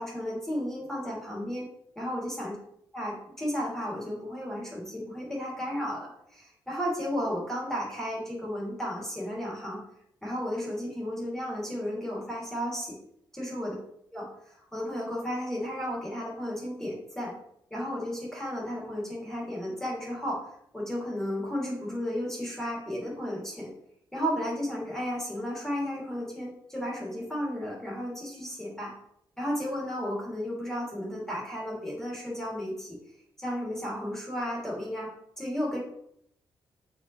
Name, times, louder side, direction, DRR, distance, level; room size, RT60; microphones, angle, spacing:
voice 1, 0.0-1.7 2.0-2.6 2.9-9.8 10.2-13.0 13.3-13.8 14.1-17.3 17.7-20.4 20.7-23.7 24.1-28.9 29.4-33.0 33.4-35.1 35.4-35.8, equal, 5° left, -5 dB, 2.9 m, -33 dB
7.4 x 5.1 x 3.3 m, 0.72 s
cardioid pair, 120°, 8 cm